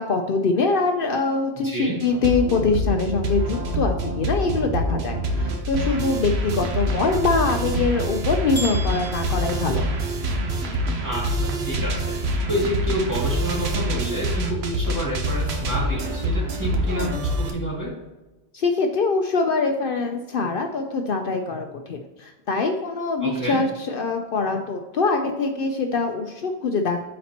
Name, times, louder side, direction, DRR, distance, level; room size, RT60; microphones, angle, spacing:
voice 1, 0.0-9.9 18.5-27.0, left 4 dB, 65° left, 4 dB, 0.8 m, -24 dB
voice 2, 1.5-2.0 11.0-12.1 12.5-17.9 23.2-23.6, equal, 15° right, -5 dB, 2.3 m, -28 dB
sound 1, 2.0-17.5, right 1 dB, 80° right, 1.1 m, -26 dB
sound 2, 8.5-10.5, right 2 dB, 30° left, 1.1 m, -36 dB
12.5 x 4.3 x 2.9 m, 1.1 s
omnidirectional pair, 1.1 m